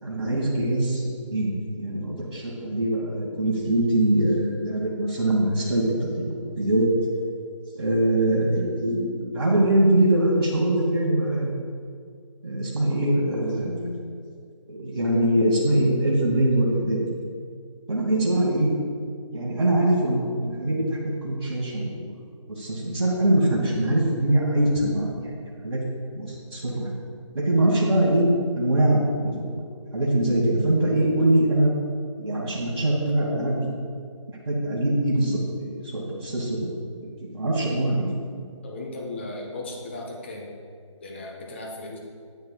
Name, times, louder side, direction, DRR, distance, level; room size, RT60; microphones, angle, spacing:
voice 1, 0.0-6.9 7.7-11.5 12.4-13.9 14.7-17.0 17.9-18.7 19.3-22.1 22.5-25.4 25.6-25.8 26.1-26.9 27.3-28.2 28.5-29.6 29.9-31.7 32.2-33.6 34.4-38.1, right 1 dB, 50° right, -5 dB, 1.6 m, -23 dB
voice 2, 38.6-40.5 41.0-42.0, left 2 dB, 20° left, -1 dB, 0.7 m, -36 dB
9.4 x 8.1 x 2.3 m, 2.2 s
figure-of-eight pair, 160°, 17 cm